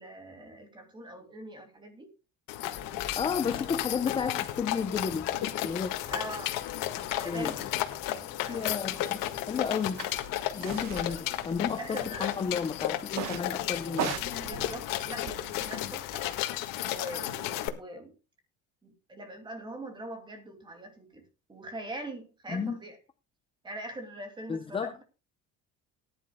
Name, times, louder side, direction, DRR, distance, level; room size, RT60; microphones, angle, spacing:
voice 1, 0.0-2.1 6.1-6.6 7.2-7.7 8.4-8.7 11.0-11.2 11.8-12.4 13.7-13.8 14.4-16.3 16.8-18.1 18.8-21.2 21.5-23.0 23.6-25.0, right 1 dB, 15° right, 2.4 m, -42 dB
sound 1, 2.5-17.7, left 14 dB, 90° left, 1.7 m, -34 dB
sound 2, 2.7-15.1, left 6 dB, 50° left, 2.5 m, -46 dB
voice 2, 3.1-5.3 5.6-5.9 7.2-7.5 8.5-10.0 10.5-14.2 22.5-22.8 24.5-24.9, left 6 dB, 15° left, 0.6 m, -32 dB
sound 3, 10.0-10.1 10.6-11.1 11.4-12.1 13.1-13.5 13.9-15.7, right 10 dB, 55° right, 1.1 m, -37 dB
19.0 x 10.5 x 2.2 m
cardioid pair, 180°, 32 cm